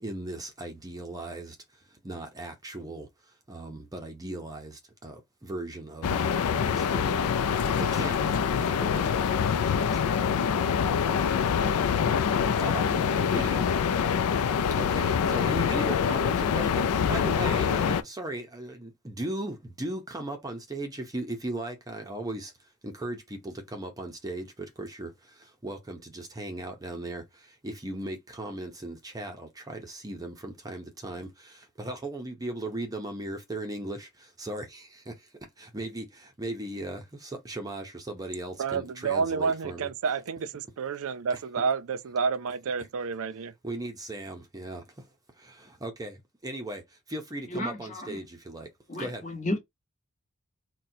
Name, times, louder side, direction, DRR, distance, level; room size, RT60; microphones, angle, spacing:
voice 1, 0.0-1.5 2.0-3.1 3.5-4.7 5.0-6.2 6.6-7.3 7.9-9.8 12.6-13.0 13.3-13.7 14.8-16.8 17.1-22.5 22.8-23.2 23.4-24.5 24.8-25.1 25.6-27.2 27.6-31.3 31.8-34.1 34.4-34.8 35.6-36.0 36.4-39.9 43.6-44.8 45.8-46.1 46.4-46.8 47.1-48.7 49.0-49.2, right 1 dB, 15° right, 0.6 m, -37 dB
sound 1, 6.0-18.0, left 7 dB, 80° left, 0.4 m, -25 dB
voice 2, 38.6-43.5, right 5 dB, 65° right, 0.4 m, -29 dB
voice 3, 47.5-48.2 48.9-49.6, left 1 dB, 35° left, 1.2 m, -32 dB
4.1 x 2.2 x 2.7 m
head